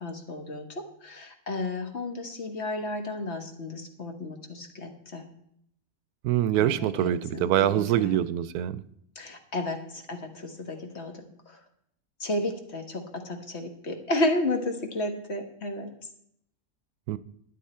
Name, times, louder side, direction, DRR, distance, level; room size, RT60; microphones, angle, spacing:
voice 1, 0.0-0.6 1.0-5.2 6.5-8.2 9.1-11.2 12.2-15.9, left 1 dB, 45° left, 4 dB, 1.6 m, -32 dB
voice 2, 6.2-8.8 17.1-17.2, right 12 dB, 90° right, 15 dB, 1.1 m, -24 dB
12.0 x 9.7 x 4.4 m, 0.72 s
omnidirectional pair, 1.6 m